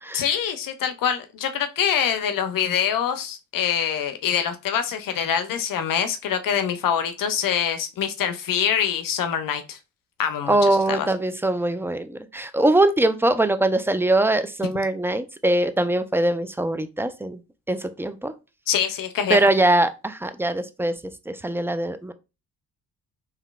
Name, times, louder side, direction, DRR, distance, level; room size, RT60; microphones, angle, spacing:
voice 1, 0.1-9.8 10.2-11.1 18.7-19.5, left 8 dB, 55° left, 0.6 m, -25 dB
voice 2, 10.5-17.4 17.7-18.3 19.3-20.9 21.3-22.1, right 1 dB, 5° right, 0.3 m, -22 dB
3.7 x 2.8 x 2.3 m
supercardioid pair, 55°, 39 cm